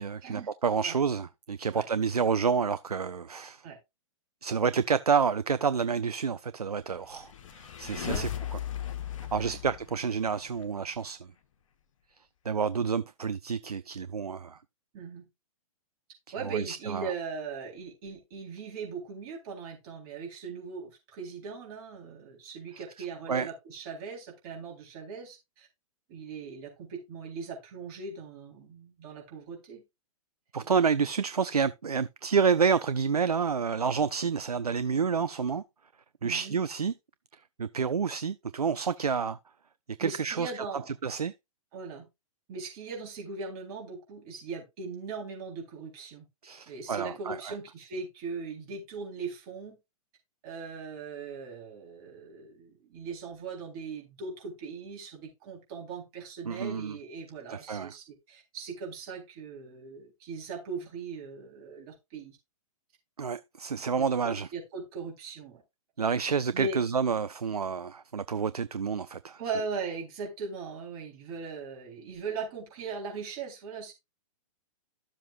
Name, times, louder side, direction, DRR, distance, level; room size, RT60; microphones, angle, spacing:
voice 1, 0.0-3.6 4.4-7.3 7.6-8.6 9.3-11.2 12.5-14.6 16.4-17.1 23.3-23.5 30.5-35.6 36.2-36.9 37.6-39.4 40.0-40.5 41.0-41.3 46.4-47.5 56.5-57.0 57.5-57.9 63.2-64.5 66.0-69.4, right 6 dB, 90° right, 0.4 m, -29 dB
sound 1, 7.0-10.6, left 10 dB, 60° left, 1.4 m, -37 dB
voice 2, 14.9-15.3 16.3-25.7 26.1-29.8 30.6-30.7 36.2-36.6 40.0-40.9 41.7-42.1 42.5-46.2 46.7-49.8 50.4-62.4 63.7-65.6 66.5-66.8 69.4-73.9, right 4 dB, 40° right, 4.0 m, -39 dB
12.5 x 7.3 x 2.5 m
figure-of-eight pair, 115°, 19 cm